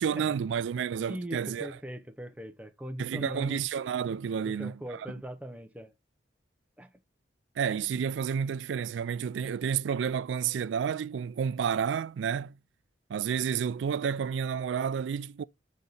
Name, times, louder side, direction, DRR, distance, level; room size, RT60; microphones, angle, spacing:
voice 1, 0.0-1.8 3.0-5.1 7.6-12.5 13.1-15.4, right 7 dB, 85° right, 0.3 m, -30 dB
voice 2, 1.1-3.6 4.4-5.9 6.8-6.9, equal, 10° right, 0.6 m, -40 dB
8.0 x 4.1 x 3.9 m
head